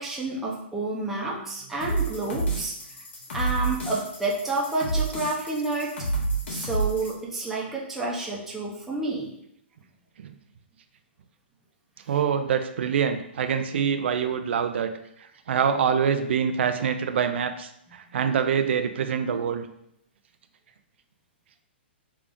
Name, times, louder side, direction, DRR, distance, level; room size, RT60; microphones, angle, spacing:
voice 1, 0.0-2.7 3.3-6.0 6.5-9.3 12.1-12.2, right 3 dB, 5° right, -5 dB, 0.5 m, -29 dB
sound 1, 1.8-7.1, right 2 dB, 75° left, 1.5 m, -29 dB
voice 2, 12.1-14.9 15.2-19.7, right 7 dB, 70° right, 8 dB, 0.3 m, -25 dB
3.4 x 2.4 x 3.6 m, 0.76 s
hypercardioid pair, 155°, 6 cm